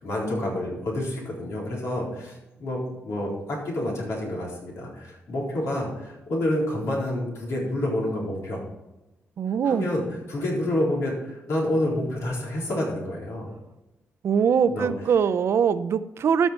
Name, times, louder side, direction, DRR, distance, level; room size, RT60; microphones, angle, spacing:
voice 1, 0.0-2.8 3.0-8.6 9.6-10.0 10.3-13.5 14.7-14.9, left 1 dB, 80° left, -3 dB, 3.9 m, -28 dB
voice 2, 9.4-9.9 14.2-16.5, right 7 dB, 65° right, 13 dB, 0.5 m, -22 dB
13.5 x 5.6 x 4.4 m, 0.98 s
cardioid pair, 120°, 5 cm